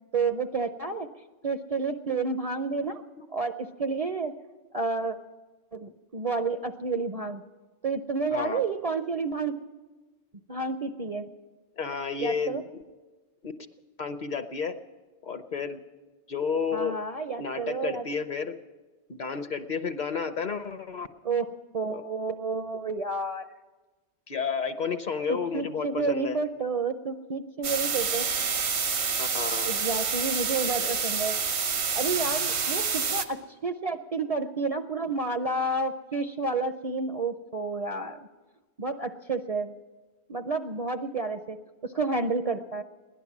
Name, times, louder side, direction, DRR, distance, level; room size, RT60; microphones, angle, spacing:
voice 1, 0.1-1.1 1.4-3.0 3.3-4.3 4.7-5.2 5.7-7.4 7.8-9.6 10.5-11.3 12.2-12.6 16.7-18.0 21.2-23.5 25.3-28.3 29.7-31.3 31.9-38.2 38.8-39.7 40.3-41.6 41.8-42.8, right 3 dB, 45° right, 8 dB, 0.5 m, -30 dB
voice 2, 8.3-8.6 11.8-12.6 13.4-13.5 14.0-14.8 15.2-15.8 16.3-17.0 17.4-18.5 19.1-21.1 21.9-22.0 24.3-26.4 29.2-29.7 30.8-30.9, left 5 dB, 50° left, 10 dB, 0.7 m, -31 dB
sound 1, 27.6-33.3, right 6 dB, 75° right, 1.2 m, -28 dB
16.5 x 11.0 x 7.2 m, 1.2 s
omnidirectional pair, 1.1 m